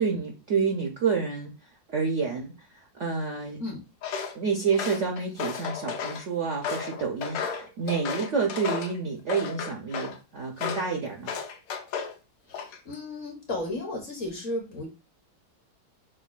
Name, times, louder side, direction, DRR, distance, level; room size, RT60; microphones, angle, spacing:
voice 1, 0.0-1.5 1.9-3.6 4.3-11.3, right 5 dB, 75° right, 0 dB, 0.6 m, -29 dB
Walk footsteps, 4.0-4.4 4.7-6.2 6.6-9.0 9.3-10.2 10.6-10.9 11.3-12.1 12.5-12.9, left 6 dB, 75° left, 1.4 m, -33 dB
voice 2, 12.5-14.9, left 2 dB, 55° left, 0 dB, 1.0 m, -34 dB
6.1 x 2.2 x 2.3 m, 0.27 s
omnidirectional pair, 2.1 m